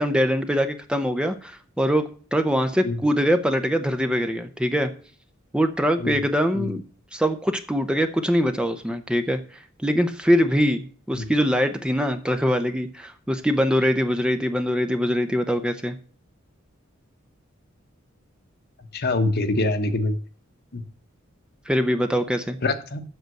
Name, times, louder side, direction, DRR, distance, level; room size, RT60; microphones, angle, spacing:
voice 1, 0.0-4.9 5.5-6.8 7.1-9.4 9.8-16.0 21.7-22.6, equal, 5° right, 8 dB, 0.7 m, -23 dB
voice 2, 18.9-20.2 20.7-20.8 22.6-23.0, left 2 dB, 50° left, 8 dB, 1.1 m, -24 dB
8.0 x 6.6 x 7.7 m, 0.42 s
head